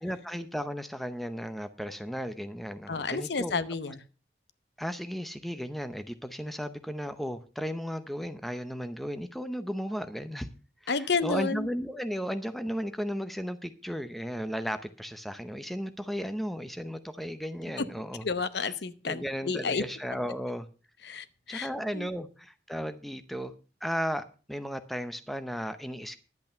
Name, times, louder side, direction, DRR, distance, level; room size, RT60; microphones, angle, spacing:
voice 1, 0.0-3.6 4.8-10.5 10.8-18.2 18.6-18.7 19.1-20.7 21.5-23.5 23.8-26.2, equal, ahead, 10 dB, 0.7 m, -35 dB
voice 2, 2.9-4.0 10.9-11.7 17.8-17.9 18.2-19.8 21.0-22.1, left 4 dB, 65° left, 13 dB, 0.7 m, -31 dB
11.0 x 8.2 x 5.6 m, 0.35 s
head